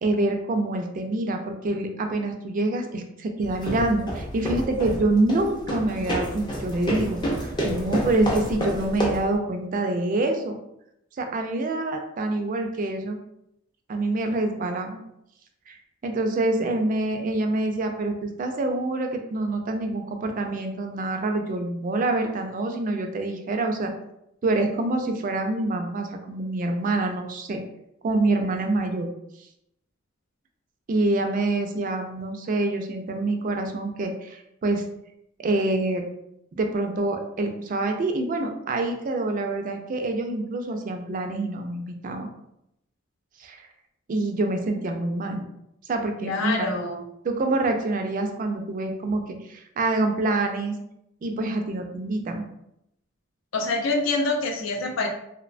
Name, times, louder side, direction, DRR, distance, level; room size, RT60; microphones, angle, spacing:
voice 1, 0.0-10.6 11.2-13.2 13.9-15.0 15.7-15.8 16.0-23.9 24.4-27.6 28.0-29.1 30.9-34.8 35.4-36.1 36.5-42.3 43.4-43.6 44.1-45.4 45.9-46.7 47.2-50.7 51.2-52.5, right 2 dB, 40° right, 5 dB, 0.3 m, -26 dB
sound 1, 3.4-9.3, equal, 20° left, 0.5 m, -29 dB
voice 2, 46.2-47.0 53.5-55.1, left 3 dB, 80° left, 2 dB, 0.5 m, -26 dB
2.8 x 2.1 x 2.5 m, 0.79 s
head